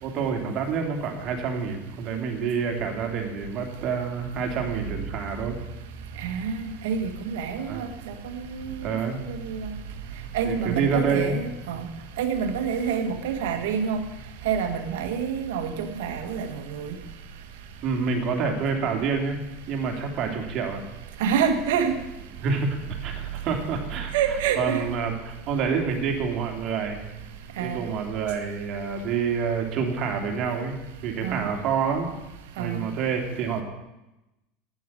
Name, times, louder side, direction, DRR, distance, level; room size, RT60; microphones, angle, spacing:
voice 1, 0.0-5.6 7.7-7.8 8.8-9.2 10.4-11.3 17.8-19.4 19.7-20.8 22.4-24.1 24.6-27.0 27.6-30.8 31.0-32.1 32.6-33.6, right 5 dB, 50° right, 3 dB, 2.9 m, -27 dB
voice 2, 6.2-8.9 9.3-9.7 10.3-11.9 12.2-14.1 14.4-16.9 21.2-21.9 24.1-24.8 27.6-27.9 31.2-31.5 32.6-32.8, right 7 dB, 75° right, 7 dB, 1.7 m, -27 dB
9.2 x 8.9 x 9.9 m, 0.98 s
hypercardioid pair, 95°, 0 cm